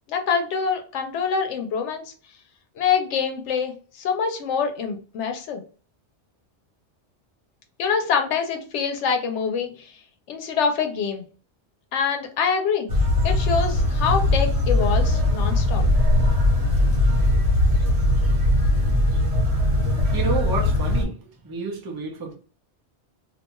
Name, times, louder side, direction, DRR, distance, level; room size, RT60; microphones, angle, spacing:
voice 1, 0.1-2.0 2.8-5.6 7.8-9.9 10.3-11.3 11.9-12.9 13.2-15.8, left 6 dB, 90° left, 0.9 m, -25 dB
sound 1, 12.9-21.0, left 1 dB, 70° right, 1.2 m, -20 dB
voice 2, 20.0-22.3, right 3 dB, 30° right, 0.5 m, -30 dB
2.5 x 2.2 x 2.9 m
omnidirectional pair, 1.2 m